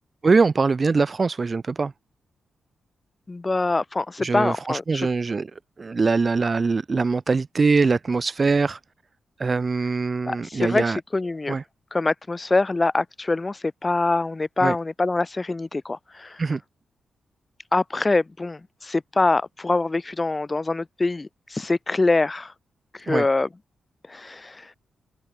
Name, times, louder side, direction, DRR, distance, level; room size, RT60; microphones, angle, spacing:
voice 1, 0.2-1.9 4.2-8.8 9.4-11.0 11.5-11.6 14.6-14.8 16.4-16.6 23.1-23.3, right 4 dB, 30° right, 0.7 m, -22 dB
voice 2, 3.3-5.0 10.2-11.6 11.9-16.4 17.7-22.5 22.9-23.5 24.1-24.7, left 3 dB, 20° left, 3.1 m, -24 dB
wide cardioid pair, 135°, 0 cm